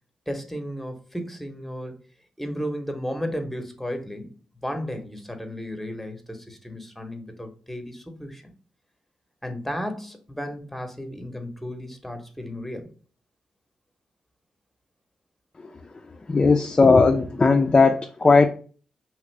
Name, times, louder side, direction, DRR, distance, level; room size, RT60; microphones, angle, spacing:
voice 1, 0.3-2.0 2.4-4.3 4.6-8.4 9.4-12.9, equal, 5° left, 6 dB, 0.8 m, -34 dB
voice 2, 16.3-18.5, left 4 dB, 35° left, 5 dB, 0.3 m, -17 dB
2.9 x 2.5 x 3.1 m, 0.39 s
supercardioid pair, 50°, 2 cm